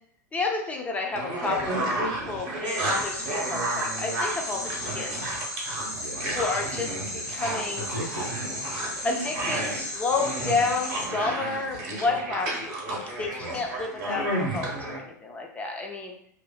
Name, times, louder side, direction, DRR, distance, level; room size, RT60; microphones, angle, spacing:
voice 1, 0.3-5.1 6.3-6.9 7.3-7.9 9.0-16.1, left 4 dB, 15° left, 1 dB, 0.4 m, -30 dB
sound 1, 1.1-15.0, right 2 dB, 40° right, 0.8 m, -32 dB
sound 2, 2.6-11.1, left 1 dB, 80° left, 0.9 m, -35 dB
voice 2, 5.9-7.4 7.7-8.4 13.2-13.6, right 1 dB, 80° right, 0 dB, 0.6 m, -39 dB
2.6 x 2.3 x 2.2 m, 0.65 s
figure-of-eight pair, 95°, 10 cm